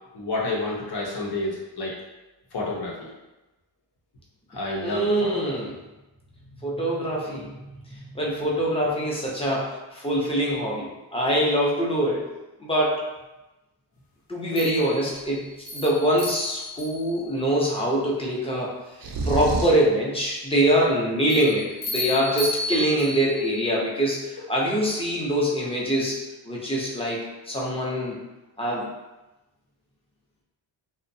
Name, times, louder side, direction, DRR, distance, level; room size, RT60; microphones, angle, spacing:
voice 1, 0.1-1.9 2.5-3.1 4.5-5.5, left 2 dB, 55° left, -3 dB, 0.8 m, -29 dB
voice 2, 4.8-5.8 6.6-7.6 7.9-12.3 12.6-12.9 14.3-15.5 15.7-18.7 19.2-26.2 26.4-28.2 28.6-28.9, right 1 dB, 10° left, -4 dB, 0.6 m, -24 dB
sound 1, 14.6-17.3 21.3-23.5, left 1 dB, 90° left, 0.9 m, -33 dB
sound 2, 19.0-19.9, right 2 dB, 50° right, 0.5 m, -27 dB
2.7 x 2.1 x 2.6 m, 1.0 s
cardioid pair, 100°, 46 cm